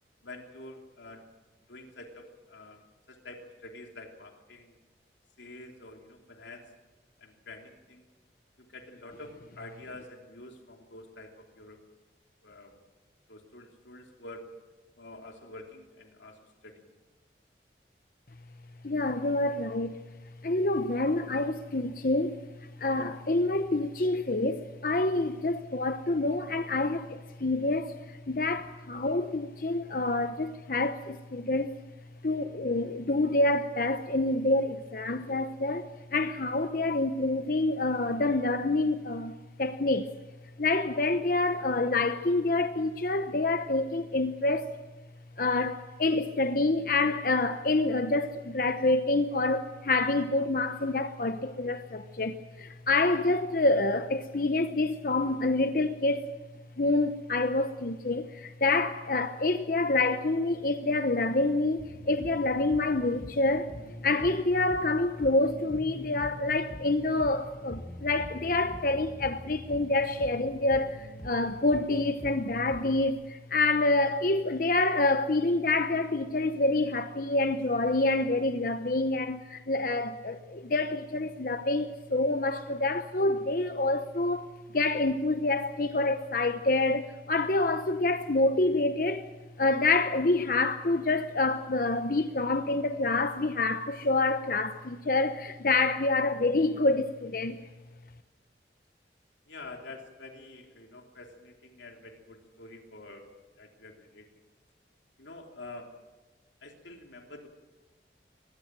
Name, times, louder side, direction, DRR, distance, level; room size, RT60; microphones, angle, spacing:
voice 1, 0.2-1.3 1.7-2.8 3.1-4.8 5.4-6.7 7.2-8.0 8.6-11.8 12.4-12.8 13.3-14.5 15.0-16.9 99.5-103.3 103.6-104.3 105.2-105.9 106.6-107.5, left 2 dB, 90° left, 3.0 m, -47 dB
voice 2, 18.8-19.9 20.4-22.5 22.8-31.8 32.2-40.1 40.6-44.8 45.4-56.3 56.8-63.7 64.0-89.3 89.6-97.6, left 2 dB, 50° left, 0.9 m, -27 dB
sound 1, 61.8-73.1, equal, 30° left, 4.0 m, -44 dB
24.0 x 20.0 x 7.5 m
head